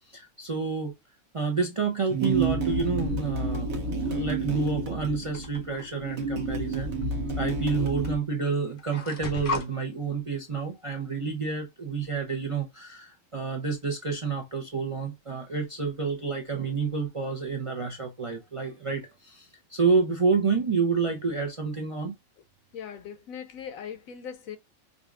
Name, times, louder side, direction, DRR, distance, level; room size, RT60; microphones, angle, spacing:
voice 1, 0.1-0.9 1.3-6.9 7.4-22.1, right 4 dB, 35° right, 0.5 m, -29 dB
sound 1, 2.1-8.2, right 3 dB, 80° right, 1.3 m, -30 dB
sound 2, 5.3-5.9 7.0-7.1 8.0-8.2 8.4-9.7, left 3 dB, 50° left, 0.8 m, -34 dB
voice 2, 22.7-24.6, left 8 dB, 80° left, 1.1 m, -39 dB
5.1 x 2.4 x 2.4 m
omnidirectional pair, 1.4 m